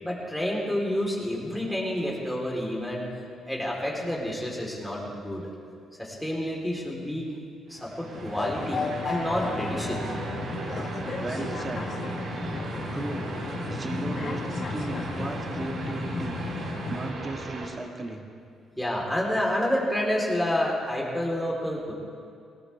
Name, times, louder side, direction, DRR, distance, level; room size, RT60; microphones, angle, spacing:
voice 1, 0.0-3.1 3.5-5.5 6.0-7.3 7.7-10.0 18.8-21.9, left 1 dB, 5° left, -3 dB, 4.0 m, -29 dB
sound 1, 7.7-17.7, right 2 dB, 70° right, 3.1 m, -37 dB
sound 2, 8.1-17.1, left 4 dB, 50° left, 1.3 m, -34 dB
sound 3, 8.1-17.1 17.4-17.5, right 3 dB, 55° right, 4.4 m, -42 dB
voice 2, 11.1-11.9 12.9-13.3 13.6-18.3, right 2 dB, 30° right, 3 dB, 1.9 m, -36 dB
19.0 x 18.0 x 3.6 m, 2.4 s
cardioid pair, 90°, 0 cm